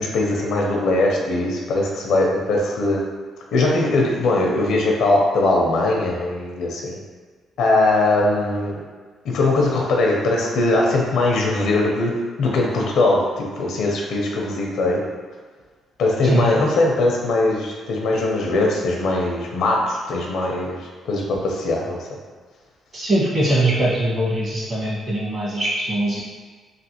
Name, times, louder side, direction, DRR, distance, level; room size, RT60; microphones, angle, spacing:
voice 1, 0.0-3.0 3.5-7.0 7.6-8.7 9.3-12.1 12.4-15.0 16.0-20.8 21.0-22.0, left 2 dB, 75° left, -1 dB, 0.6 m, -20 dB
voice 2, 22.9-26.2, right 1 dB, 45° right, -6 dB, 1.3 m, -21 dB
3.3 x 2.4 x 2.9 m, 1.5 s
cardioid pair, 90°, 0 cm